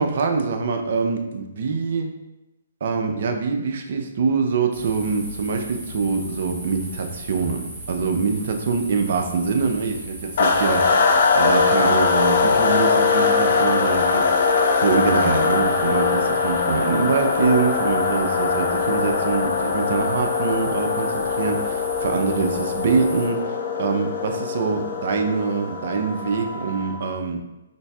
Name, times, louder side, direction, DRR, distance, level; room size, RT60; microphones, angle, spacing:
voice 1, 0.0-2.1 2.8-14.2 14.8-27.4, right 5 dB, 55° right, 5 dB, 0.4 m, -24 dB
sound 1, 4.7-23.3, right 1 dB, 10° right, 1.2 m, -38 dB
sound 2, 10.4-27.1, left 4 dB, 50° left, 0.5 m, -21 dB
3.9 x 3.2 x 2.3 m, 1.0 s
figure-of-eight pair, 130°, 0 cm